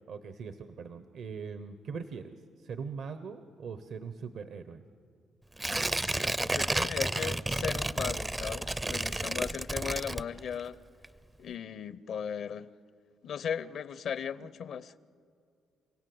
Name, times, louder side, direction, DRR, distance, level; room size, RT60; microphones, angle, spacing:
voice 1, 0.1-4.8 14.4-14.5, right 5 dB, 65° right, 10 dB, 1.0 m, -41 dB
Tearing, 5.6-10.7 11.0-11.1, right 2 dB, 15° right, 0.5 m, -31 dB
voice 2, 5.9-10.8 11.4-12.7 13.2-15.0, left 7 dB, 65° left, 17 dB, 0.7 m, -37 dB
30.0 x 17.0 x 7.9 m, 2.3 s
cardioid pair, 90°, 0 cm